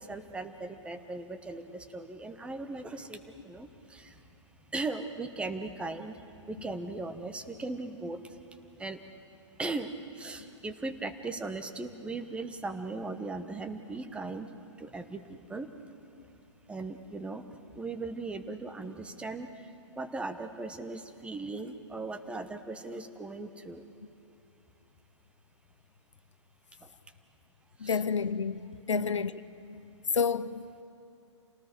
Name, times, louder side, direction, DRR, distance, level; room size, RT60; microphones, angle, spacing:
voice 1, 0.0-4.1 4.7-6.2 6.5-8.2 8.8-9.0 9.6-9.9 10.2-14.5 14.8-15.7 16.7-17.4 17.7-19.5 20.0-23.8 27.8-28.0 28.9-29.3, right 3 dB, 5° right, 1.0 m, -38 dB
voice 2, 27.8-29.3 30.1-30.6, left 6 dB, 75° left, 0.7 m, -29 dB
28.5 x 19.0 x 6.2 m
figure-of-eight pair, 120°, 16 cm